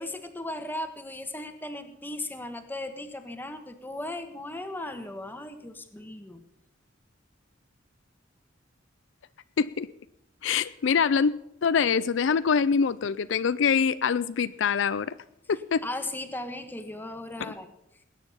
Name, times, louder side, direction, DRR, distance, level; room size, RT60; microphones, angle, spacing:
voice 1, 0.0-6.4 15.8-17.7, left 1 dB, 10° left, 7 dB, 1.3 m, -37 dB
voice 2, 9.6-9.9 10.4-11.3 11.6-15.1 15.5-15.8 17.4-17.5, left 6 dB, 70° left, 15 dB, 0.4 m, -24 dB
20.5 x 9.2 x 5.6 m, 0.85 s
head